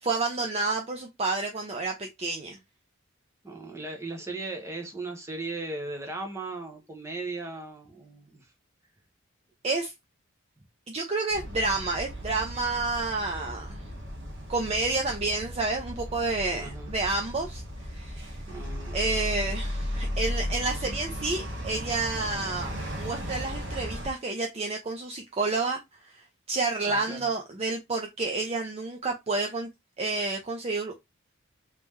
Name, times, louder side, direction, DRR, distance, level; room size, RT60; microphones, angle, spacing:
voice 1, 0.0-2.6 9.6-9.9 10.9-13.8 14.5-17.6 17.9-18.4 18.9-25.8 26.1-29.7 30.0-30.9, right 3 dB, 30° right, 0.5 m, -30 dB
voice 2, 3.4-8.5 16.6-16.9 18.5-19.0 26.9-27.3, right 2 dB, 15° right, 0.9 m, -37 dB
sound 1, 11.3-24.1, equal, 60° right, 1.1 m, -35 dB
3.2 x 2.9 x 3.5 m
head